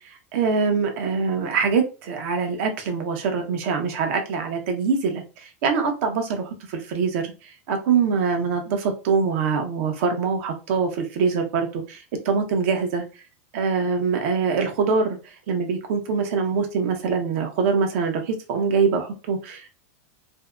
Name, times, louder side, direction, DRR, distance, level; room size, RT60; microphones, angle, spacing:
voice 1, 0.3-7.3 7.7-13.0 13.5-15.2 15.5-19.7, right 5 dB, 60° right, 0.7 m, -24 dB
2.6 x 2.1 x 2.3 m
supercardioid pair, 130°, 8 cm